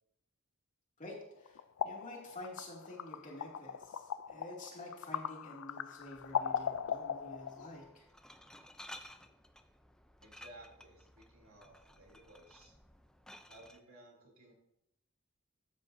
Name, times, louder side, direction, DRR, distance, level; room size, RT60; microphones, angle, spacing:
voice 1, 1.0-8.0, left 1 dB, 35° left, -2 dB, 2.6 m, -49 dB
sound 1, 1.1-7.8, left 8 dB, 65° left, 0.4 m, -39 dB
Glass, 6.0-13.8, left 1 dB, 5° left, 0.5 m, -56 dB
voice 2, 10.2-12.7 13.5-14.5, right 1 dB, 75° right, -1 dB, 3.0 m, -57 dB
13.0 x 8.3 x 2.7 m, 0.82 s
head